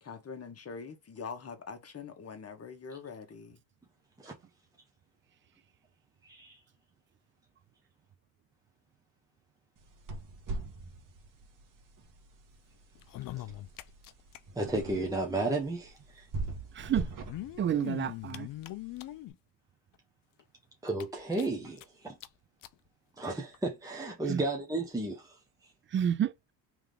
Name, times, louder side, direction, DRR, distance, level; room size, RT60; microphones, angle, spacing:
voice 1, 0.0-3.6, left 5 dB, 35° left, 1.3 m, -43 dB
voice 2, 6.2-6.6 14.6-16.3 20.8-22.2 23.2-25.4, right 2 dB, 10° right, 1.0 m, -33 dB
sound 1, 9.8-19.1, right 3 dB, 45° right, 1.5 m, -43 dB
sound 2, 12.9-14.4 14.7-14.8 14.9-15.0 16.1-16.2 17.0-19.3 19.9-20.0 20.4-20.5 20.9-21.8 22.2-22.3 22.6-22.7 23.5-23.6, left 15 dB, 50° left, 0.5 m, -42 dB
voice 3, 16.8-17.1 17.6-18.5 24.3-24.4 25.9-26.5, right 9 dB, 30° right, 0.3 m, -30 dB
3.5 x 3.4 x 3.3 m
supercardioid pair, 85°, 43 cm